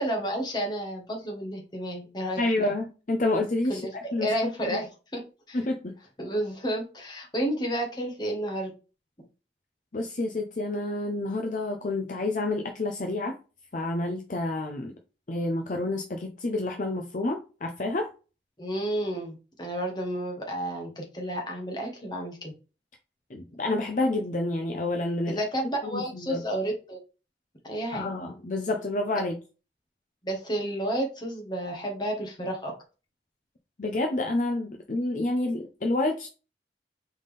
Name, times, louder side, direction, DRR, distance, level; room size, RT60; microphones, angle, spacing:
voice 1, 0.0-2.7 3.7-5.6 6.2-8.7 18.6-22.5 25.2-27.0 27.6-28.1 30.2-32.7, right 1 dB, 25° left, 1 dB, 1.3 m, -31 dB
voice 2, 2.4-3.8 4.1-4.8 5.5-5.9 9.9-13.4 13.7-14.9 15.3-18.1 23.3-25.4 25.9-26.4 27.9-29.3 33.8-36.3, left 2 dB, 45° left, 4 dB, 0.6 m, -29 dB
4.0 x 3.6 x 3.4 m, 0.33 s
head